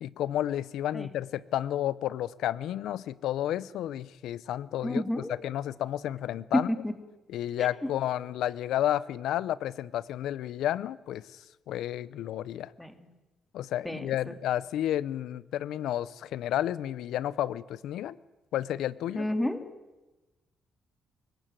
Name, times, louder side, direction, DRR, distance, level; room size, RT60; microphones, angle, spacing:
voice 1, 0.0-5.0 5.3-6.7 7.3-11.4 11.7-12.7 13.5-18.2 18.5-19.3, left 12 dB, 80° left, 19 dB, 0.7 m, -31 dB
voice 2, 4.8-5.4 6.5-6.9 7.6-7.9 12.8-13.1 13.8-14.3 19.2-19.6, left 1 dB, 5° left, 8 dB, 2.4 m, -30 dB
24.5 x 15.0 x 9.1 m, 1.1 s
cardioid pair, 90°, 0 cm